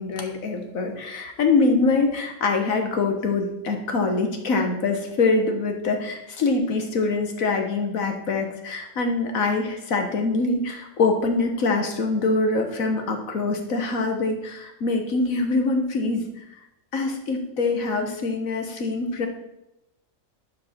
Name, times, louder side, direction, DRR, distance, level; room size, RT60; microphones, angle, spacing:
voice 1, 0.0-16.2 16.9-19.3, left 3 dB, 75° left, 4 dB, 1.7 m, -24 dB
11.5 x 5.2 x 4.4 m, 0.88 s
omnidirectional pair, 1.4 m